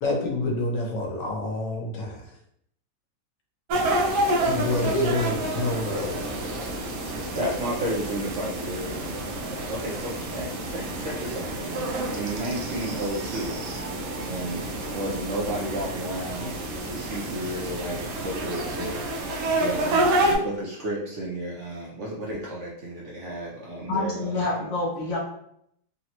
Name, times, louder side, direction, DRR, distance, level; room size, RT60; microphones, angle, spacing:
voice 1, 0.0-2.2 4.4-6.2, left 2 dB, 85° left, 1 dB, 1.3 m, -27 dB
sound 1, 3.7-20.4, right 1 dB, 85° right, 1.2 m, -29 dB
voice 2, 7.0-13.6 14.2-24.4, right 1 dB, 65° right, -5 dB, 0.7 m, -33 dB
voice 3, 23.9-25.2, left 2 dB, 65° left, -3 dB, 0.8 m, -27 dB
3.6 x 2.0 x 2.8 m, 0.71 s
omnidirectional pair, 1.8 m